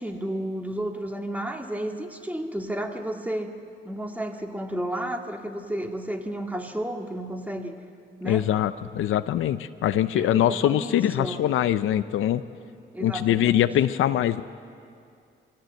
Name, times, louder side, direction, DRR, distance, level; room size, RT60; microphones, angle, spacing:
voice 1, 0.0-3.5 3.8-7.8 8.2-8.5 10.1-11.4 12.9-13.6, right 1 dB, 5° right, 3 dB, 2.1 m, -32 dB
voice 2, 8.2-12.4 13.0-14.4, left 11 dB, 85° left, 12 dB, 0.6 m, -23 dB
23.5 x 16.5 x 7.8 m, 2.4 s
cardioid pair, 65°, 20 cm